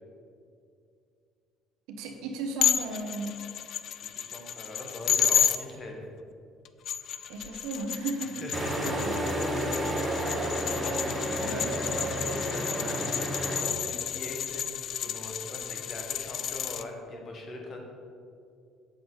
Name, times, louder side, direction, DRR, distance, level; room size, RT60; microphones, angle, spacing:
voice 1, 1.9-3.3 7.3-8.4 8.8-9.2 11.4-11.7, right 3 dB, 85° right, 3 dB, 1.0 m, -35 dB
sound 1, 2.6-5.6 6.6-16.8, left 9 dB, 55° left, 0.3 m, -31 dB
voice 2, 4.1-6.1 8.2-9.3 10.7-13.0 13.6-17.8, left 2 dB, 40° left, 1 dB, 1.5 m, -41 dB
sound 2, 8.5-13.6, right 1 dB, 10° right, 1.3 m, -31 dB
7.7 x 6.9 x 4.0 m, 2.4 s
cardioid pair, 110°, 0 cm